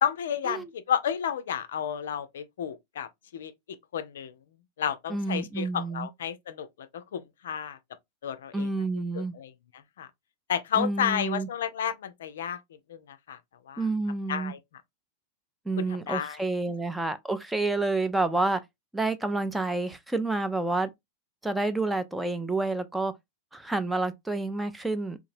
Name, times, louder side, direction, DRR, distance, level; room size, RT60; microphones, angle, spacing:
voice 1, 0.0-3.5 3.9-4.3 4.8-6.7 6.9-7.8 8.2-8.7 9.1-9.5 10.0-10.1 10.5-12.6 12.9-13.4 13.7-13.8 14.3-14.6 15.8-16.4, left 8 dB, 60° left, 0.4 m, -31 dB
voice 2, 5.1-6.1 8.5-9.3 10.8-11.5 13.8-14.5 15.7-18.6 18.9-20.9 21.4-23.1 23.5-25.2, right 2 dB, 5° right, 0.4 m, -29 dB
3.8 x 2.5 x 2.5 m
figure-of-eight pair, 90°, 0 cm